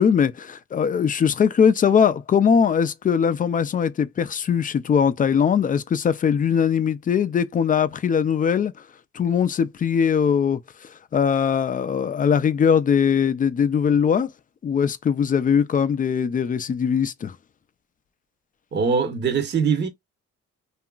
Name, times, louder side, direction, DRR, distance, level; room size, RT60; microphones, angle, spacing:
voice 1, 0.0-8.7 9.1-14.3 14.6-17.4, left 7 dB, 30° left, 0.3 m, -21 dB
voice 2, 18.7-19.9, right 6 dB, 35° right, 0.7 m, -22 dB
2.8 x 2.4 x 2.2 m
cardioid pair, 90°, 30 cm